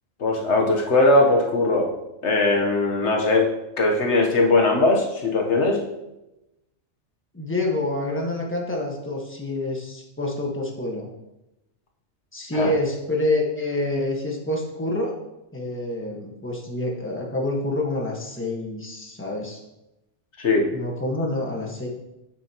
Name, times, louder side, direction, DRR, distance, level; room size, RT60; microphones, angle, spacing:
voice 1, 0.2-1.9 2.2-3.5 3.8-5.8 12.5-12.7 20.4-20.7, left 2 dB, 75° left, 1 dB, 1.4 m, -20 dB
voice 2, 7.3-11.1 12.3-15.1 15.5-19.6 20.7-21.9, left 2 dB, 10° left, -1 dB, 1.4 m, -27 dB
8.5 x 8.0 x 3.0 m, 0.93 s
omnidirectional pair, 1.2 m